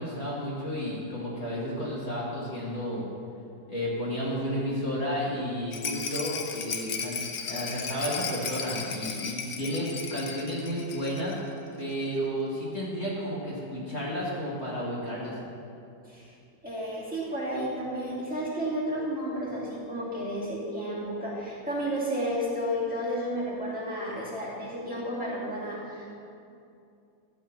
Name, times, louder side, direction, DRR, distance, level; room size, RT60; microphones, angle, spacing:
voice 1, 0.0-3.1 3.7-11.4 11.8-15.3, equal, 35° left, -6 dB, 2.1 m, -32 dB
Rattle, 5.7-11.4 11.7-11.8 12.0-12.1, left 5 dB, 55° left, 1.1 m, -35 dB
voice 2, 16.6-26.1, equal, 5° right, -8 dB, 2.6 m, -32 dB
13.5 x 4.7 x 7.3 m, 2.6 s
omnidirectional pair, 2.0 m